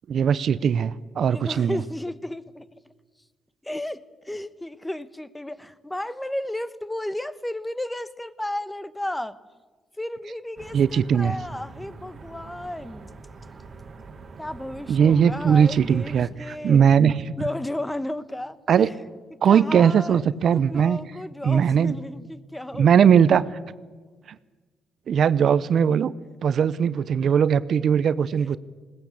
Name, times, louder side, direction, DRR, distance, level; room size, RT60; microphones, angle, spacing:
voice 1, 0.1-1.8 10.7-11.3 14.9-17.4 18.7-18.9 19.4-21.0 21.4-22.0 22.8-23.4 25.1-26.1 26.4-28.6, right 7 dB, 60° right, 16 dB, 0.7 m, -19 dB
voice 2, 1.3-2.8 3.6-9.4 10.0-13.1 14.4-16.9 17.4-18.9 19.4-23.1 26.5-26.6 28.4-28.6, left 1 dB, 10° left, 15 dB, 1.1 m, -33 dB
sound 1, 10.6-16.3, right 3 dB, 40° right, 2.4 m, -43 dB
20.0 x 18.5 x 8.6 m, 1.4 s
cardioid pair, 90°, 0 cm